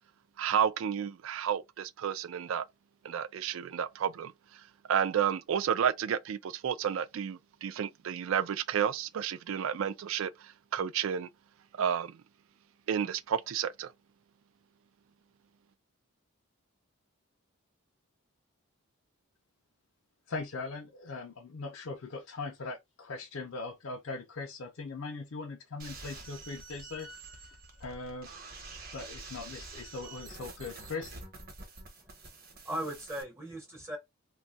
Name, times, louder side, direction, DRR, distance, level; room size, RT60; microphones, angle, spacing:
voice 1, 0.4-2.7 3.0-4.3 4.9-11.3 11.8-12.2 12.9-13.9, right 8 dB, 70° right, 0.3 m, -31 dB
voice 2, 20.3-27.1 27.8-28.3 28.9-31.1, left 3 dB, 65° left, 0.5 m, -40 dB
sound 1, 25.8-33.2, right 3 dB, 45° right, 0.9 m, -47 dB
voice 3, 32.0-34.0, right 1 dB, 10° right, 0.6 m, -39 dB
2.6 x 2.3 x 3.9 m
head